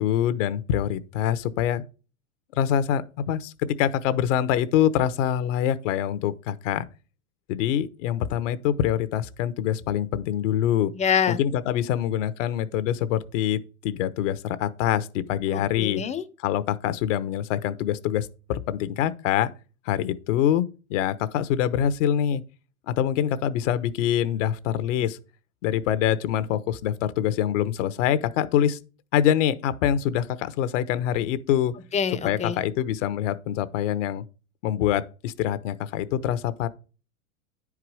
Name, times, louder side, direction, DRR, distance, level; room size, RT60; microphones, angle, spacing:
voice 1, 0.0-1.8 2.6-6.9 7.5-10.9 11.3-16.0 16.4-19.5 19.8-22.4 22.9-25.2 25.6-28.8 29.1-31.7 32.2-34.2 34.6-36.7, left 10 dB, 60° left, 1.0 m, -25 dB
voice 2, 11.0-11.4 15.5-16.2 31.9-32.6, left 7 dB, 15° left, 0.7 m, -25 dB
10.0 x 4.8 x 4.7 m
hypercardioid pair, 110°, 42 cm